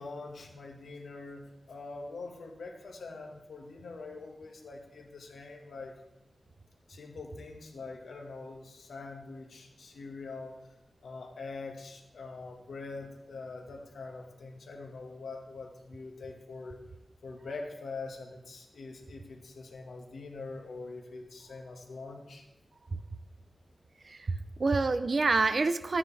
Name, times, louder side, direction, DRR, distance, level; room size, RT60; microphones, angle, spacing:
voice 1, 0.0-5.9 6.9-10.6 11.0-16.8 17.2-22.5, left 3 dB, 90° left, 2 dB, 1.7 m, -44 dB
voice 2, 24.0-26.0, right 3 dB, 45° right, 11 dB, 0.6 m, -27 dB
13.5 x 9.5 x 3.4 m, 0.94 s
wide cardioid pair, 105°, 0 cm